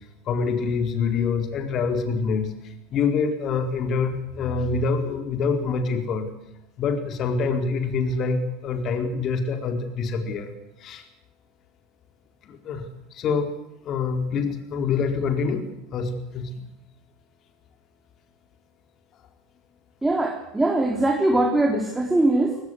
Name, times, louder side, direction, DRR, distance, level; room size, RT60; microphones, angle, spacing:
voice 1, 0.3-2.5 2.9-6.3 6.8-10.5 10.8-11.0 12.5-12.9 13.1-13.5 13.8-16.5, left 5 dB, 40° left, 6 dB, 4.4 m, -25 dB
voice 2, 20.0-22.6, right 2 dB, 10° right, 1 dB, 3.8 m, -21 dB
24.0 x 19.0 x 8.1 m, 0.89 s
figure-of-eight pair, 75°, 0 cm